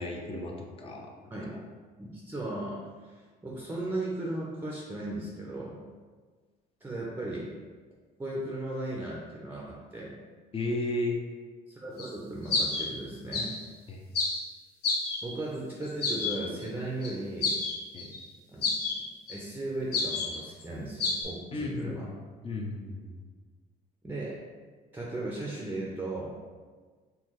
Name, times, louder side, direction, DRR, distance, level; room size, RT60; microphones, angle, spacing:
voice 1, 0.0-1.1 1.5-1.6 10.5-11.2 13.9-14.0 17.9-18.1 21.5-22.1 22.4-23.2, left 2 dB, 35° left, 1 dB, 0.7 m, -34 dB
voice 2, 2.0-5.8 6.8-7.5 8.2-10.2 11.7-13.5 15.2-17.6 18.5-18.7 18.9-19.0 19.3-22.1 24.0-24.4 24.9-26.4, right 2 dB, 10° right, -4 dB, 0.6 m, -36 dB
sound 1, 12.0-12.1 12.4-12.9 13.3-13.7 14.2-14.4 14.8-15.4 15.8-16.4 16.6-16.7 17.0-17.1 17.4-18.3 18.6-19.0 19.3-19.4 19.9-20.6 21.0-21.2, left 3 dB, 75° left, 1.2 m, -29 dB
4.5 x 3.3 x 3.1 m, 1.5 s
cardioid pair, 110°, 17 cm